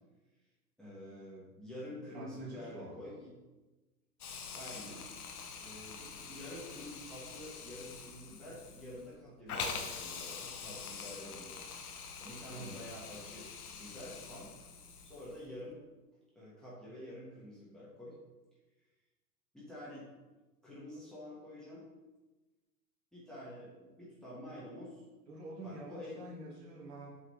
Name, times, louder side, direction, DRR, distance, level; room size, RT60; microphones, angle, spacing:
voice 1, 0.8-3.3 4.5-5.1 5.6-14.6 15.0-15.8 16.3-18.2 19.5-20.1 20.6-21.8 23.1-25.0 25.6-26.3, left 1 dB, ahead, -8 dB, 1.4 m, -48 dB
voice 2, 2.1-2.9 12.5-12.9 25.3-27.1, right 1 dB, 40° right, -4 dB, 1.9 m, -47 dB
Hiss, 4.2-15.5, left 5 dB, 60° left, 0.9 m, -45 dB
8.2 x 3.8 x 3.2 m, 1.2 s
figure-of-eight pair, 110°, 50 cm